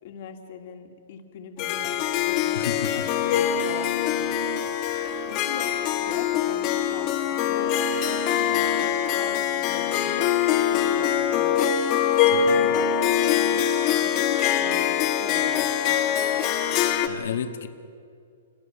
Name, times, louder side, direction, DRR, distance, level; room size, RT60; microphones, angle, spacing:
voice 1, 0.0-4.5 5.2-5.8 6.0-10.2 10.7-11.7 12.2-16.0, left 7 dB, 40° left, 4 dB, 2.5 m, -40 dB
Harp, 1.6-17.1, left 9 dB, 25° left, 1.6 m, -23 dB
voice 2, 2.5-3.1 12.2-12.6 17.1-17.7, left 8 dB, 65° left, 7 dB, 1.9 m, -32 dB
29.0 x 22.0 x 7.3 m, 2.4 s
hypercardioid pair, 170°, 0 cm